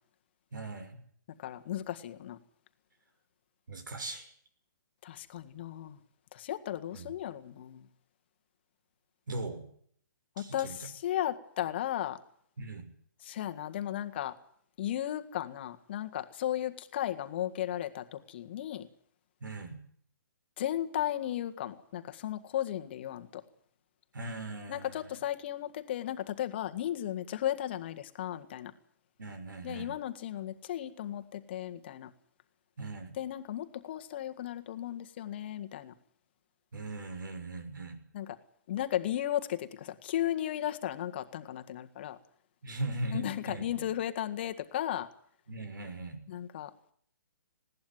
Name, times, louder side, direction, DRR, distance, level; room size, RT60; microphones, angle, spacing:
voice 1, 0.5-1.0 3.7-4.3 6.9-7.1 9.3-9.6 10.4-10.9 12.6-12.9 19.4-19.8 24.1-25.2 29.2-29.9 32.8-33.1 36.7-38.0 42.6-43.9 45.5-46.2, right 2 dB, 75° right, 8 dB, 6.2 m, -39 dB
voice 2, 1.4-2.4 5.0-6.0 6.3-7.9 10.4-12.2 13.2-14.3 14.8-18.9 20.6-23.4 24.7-28.7 29.6-32.1 33.2-35.9 38.1-38.4 38.7-42.2 43.1-45.1 46.3-46.9, left 12 dB, 30° left, 8 dB, 1.7 m, -35 dB
20.0 x 17.5 x 9.4 m, 0.63 s
hypercardioid pair, 165°, 11 cm